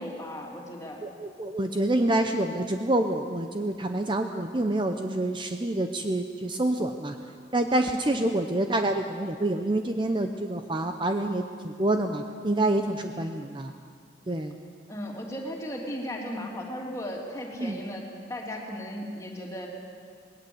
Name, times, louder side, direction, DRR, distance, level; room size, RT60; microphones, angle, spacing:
voice 1, 0.0-1.0 8.2-8.3 13.2-13.3 14.9-19.7, equal, 15° left, -1 dB, 2.9 m, -36 dB
voice 2, 1.0-7.1 7.5-13.7 14.3-14.6 17.6-17.8, right 1 dB, 25° right, 6 dB, 0.7 m, -27 dB
19.5 x 18.0 x 7.9 m, 2.1 s
head